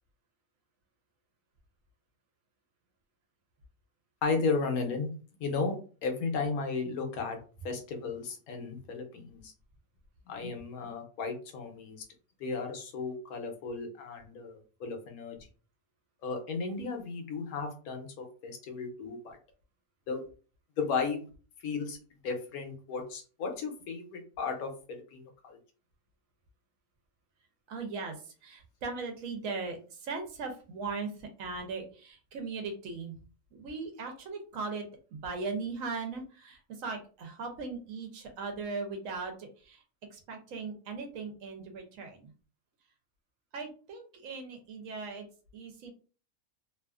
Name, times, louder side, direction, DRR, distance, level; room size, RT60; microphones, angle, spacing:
voice 1, 4.2-5.1 5.4-5.7 6.0-7.4 7.6-9.4 10.3-12.0 12.4-15.4 16.2-19.4 20.1-20.2 20.8-21.3 21.6-22.0 22.2-25.6, left 4 dB, 80° left, 4 dB, 1.1 m, -34 dB
voice 2, 27.7-28.2 28.4-33.2 33.5-34.8 35.1-39.8 40.1-42.3 43.5-45.2 45.5-45.9, right 4 dB, 70° right, 4 dB, 1.0 m, -38 dB
2.7 x 2.4 x 2.3 m, 0.38 s
omnidirectional pair, 1.5 m